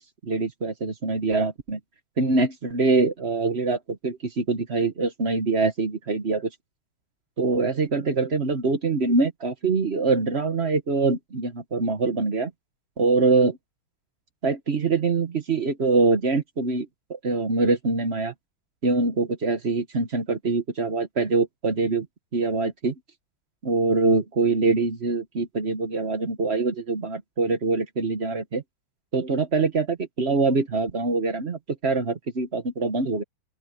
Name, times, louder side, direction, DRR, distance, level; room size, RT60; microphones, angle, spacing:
voice 1, 0.2-1.8 2.2-6.5 7.4-12.5 13.0-13.6 14.4-18.3 18.8-22.1 22.3-22.9 23.6-28.6 29.1-33.2, right 3 dB, 40° right, 1.1 m, -24 dB
open air
omnidirectional pair, 2.4 m